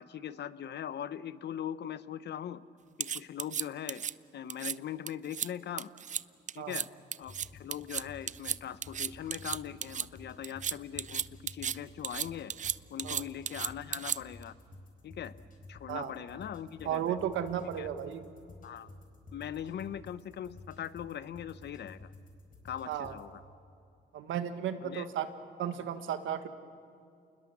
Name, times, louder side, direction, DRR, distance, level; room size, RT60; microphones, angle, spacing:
voice 1, 0.0-2.6 3.0-4.0 4.3-5.9 6.5-6.9 7.2-12.5 12.9-14.5 15.0-15.3 15.7-17.2 17.8-17.9 18.6-18.9 19.3-22.1 22.6-23.4 24.8-25.1, left 9 dB, 60° left, 16 dB, 0.8 m, -41 dB
sound 1, 3.0-4.1 4.5-4.7 5.1-5.5 5.8-6.2 6.5-6.9 7.1-10.1 10.4-11.8 12.0-14.4, right 8 dB, 40° right, 0.5 m, -34 dB
sound 2, 7.2-23.3, left 2 dB, 45° left, 4.7 m, -53 dB
voice 2, 16.8-18.2 22.9-23.1 24.1-25.3 25.6-26.5, right 9 dB, 80° right, 9 dB, 1.5 m, -34 dB
28.0 x 21.0 x 7.3 m, 2.5 s
cardioid pair, 90°, 20 cm